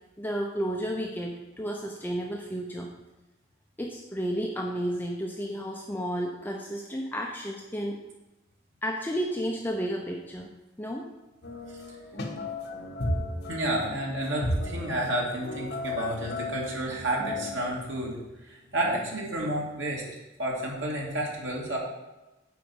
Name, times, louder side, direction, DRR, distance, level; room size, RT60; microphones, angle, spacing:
voice 1, 0.2-2.9 3.8-8.0 8.8-10.5 10.8-11.1, equal, 10° left, 0 dB, 0.7 m, -32 dB
sound 1, 11.4-17.7, left 1 dB, 60° left, 1.5 m, -34 dB
voice 2, 13.5-18.2 18.5-20.0 20.4-21.8, right 1 dB, 80° right, -3 dB, 2.5 m, -30 dB
8.6 x 4.9 x 7.2 m, 1.0 s
head